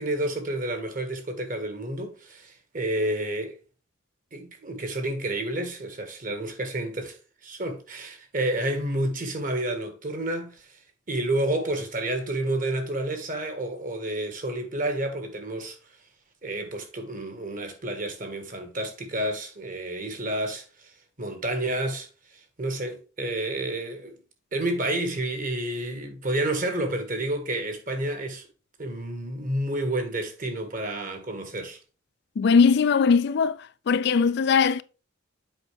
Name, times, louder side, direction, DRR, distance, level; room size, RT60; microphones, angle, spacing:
voice 1, 0.0-3.6 4.3-7.2 7.4-10.7 11.1-15.8 16.4-20.9 21.2-24.2 24.5-28.4 28.8-31.8, right 1 dB, 40° right, 1.4 m, -30 dB
voice 2, 32.4-33.6 33.9-34.8, left 5 dB, 55° left, 0.3 m, -20 dB
8.0 x 5.0 x 3.3 m
head